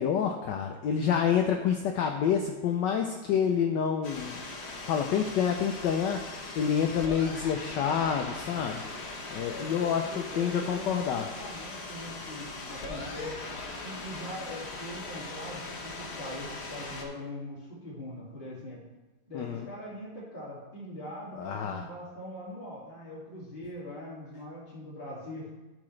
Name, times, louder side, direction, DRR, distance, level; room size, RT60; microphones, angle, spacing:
voice 1, 0.0-4.4 4.8-6.2 6.6-8.8 9.3-10.1 10.4-11.3 19.3-19.6 21.4-21.8, left 7 dB, 80° left, 4 dB, 1.0 m, -28 dB
sound 1, 4.0-17.0, left 3 dB, 50° left, 0.8 m, -40 dB
voice 2, 9.5-13.4 13.8-18.8 19.3-25.5, left 1 dB, 25° left, -7 dB, 2.2 m, -42 dB
12.5 x 4.9 x 3.2 m, 1.2 s
omnidirectional pair, 2.4 m